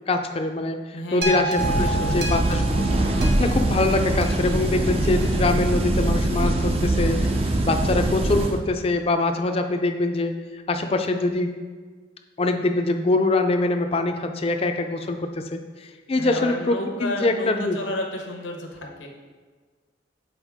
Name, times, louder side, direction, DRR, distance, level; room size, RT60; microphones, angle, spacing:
voice 1, 0.0-0.8 1.1-1.9 2.1-2.9 3.4-7.3 7.6-11.5 12.4-15.6 16.1-17.8, left 2 dB, 30° left, 6 dB, 0.4 m, -23 dB
voice 2, 0.9-1.5 1.8-2.4 16.2-19.1, left 1 dB, 85° left, 1 dB, 0.9 m, -32 dB
sound 1, 1.2-5.5 6.2-6.3, right 2 dB, 55° right, 0.8 m, -31 dB
sound 2, 1.6-8.6, right 1 dB, 30° right, 0.5 m, -23 dB
7.2 x 4.3 x 3.5 m, 1.5 s
head